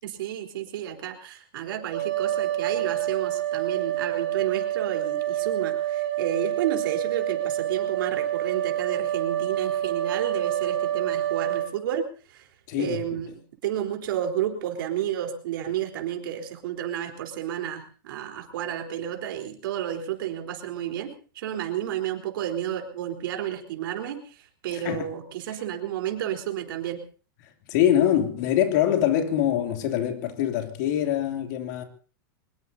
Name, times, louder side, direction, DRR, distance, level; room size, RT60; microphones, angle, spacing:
voice 1, 0.0-12.5 12.8-27.0, right 10 dB, 70° right, 4.1 m, -31 dB
sound 1, 1.9-11.7, right 11 dB, 50° right, 7.3 m, -27 dB
voice 2, 12.7-13.0 24.7-25.1 27.7-31.8, left 10 dB, 50° left, 3.0 m, -24 dB
24.0 x 21.0 x 2.8 m
supercardioid pair, 155°, 12 cm